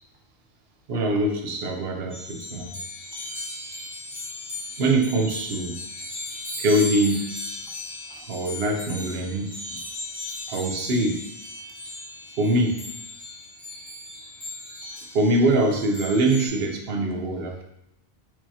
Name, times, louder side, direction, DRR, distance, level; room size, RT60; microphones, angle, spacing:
voice 1, 0.9-2.8 4.8-5.8 6.6-7.3 8.1-9.8 10.5-11.2 12.4-12.8 15.1-17.6, right 1 dB, 70° right, 2 dB, 0.9 m, -23 dB
sound 1, 2.1-16.5, left 2 dB, 80° left, 1.8 m, -37 dB
4.6 x 2.7 x 2.8 m, 0.84 s
omnidirectional pair, 1.1 m